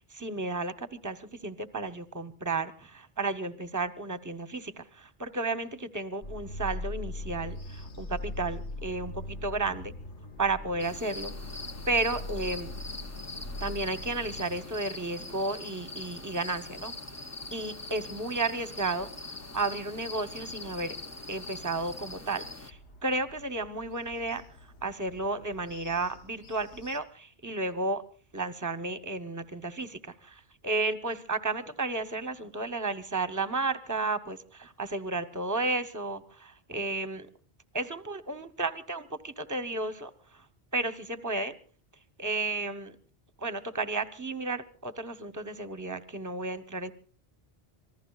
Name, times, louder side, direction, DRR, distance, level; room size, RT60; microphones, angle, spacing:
voice 1, 0.0-9.9 10.4-12.7 13.6-16.9 17.5-21.0 21.3-24.4 24.8-28.0 28.3-37.3 37.7-40.5 40.7-41.6 42.2-43.0 43.4-46.9, right 3 dB, 20° right, 12 dB, 0.9 m, -33 dB
sound 1, 6.2-14.6, left 2 dB, 50° left, 1.4 m, -40 dB
sound 2, 7.1-27.0, equal, 85° left, 1.6 m, -54 dB
sound 3, 10.8-22.7, left 2 dB, 20° left, 0.6 m, -43 dB
26.5 x 19.5 x 2.4 m, 0.41 s
omnidirectional pair, 1.1 m